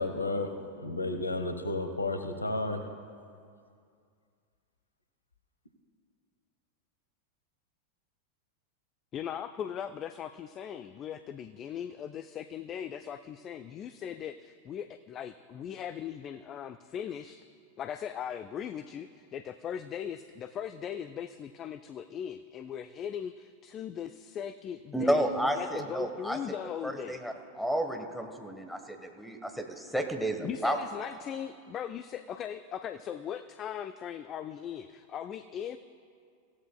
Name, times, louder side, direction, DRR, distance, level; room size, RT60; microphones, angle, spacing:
voice 1, 0.0-2.8, left 2 dB, 80° left, 7 dB, 1.1 m, -32 dB
voice 2, 9.1-17.5 17.8-25.3 25.5-27.2 30.4-35.8, left 9 dB, 30° left, 10 dB, 0.4 m, -39 dB
voice 3, 24.9-26.4 26.8-30.8, right 1 dB, ahead, 6 dB, 1.3 m, -31 dB
25.0 x 15.5 x 2.3 m, 2.3 s
figure-of-eight pair, 90°, 0 cm